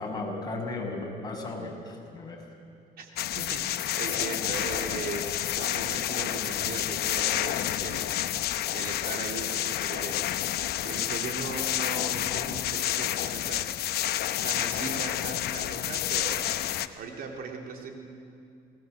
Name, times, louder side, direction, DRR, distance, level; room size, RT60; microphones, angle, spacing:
voice 1, 0.0-2.4, left 2 dB, 25° left, -1 dB, 6.2 m, -35 dB
sound 1, 3.2-16.9, left 12 dB, 70° left, 0.9 m, -29 dB
voice 2, 3.4-8.1 8.7-10.3 10.8-14.1 14.4-16.5 16.8-17.9, right 4 dB, 60° right, 3 dB, 2.8 m, -38 dB
27.0 x 19.5 x 7.9 m, 2.5 s
cardioid pair, 110°, 17 cm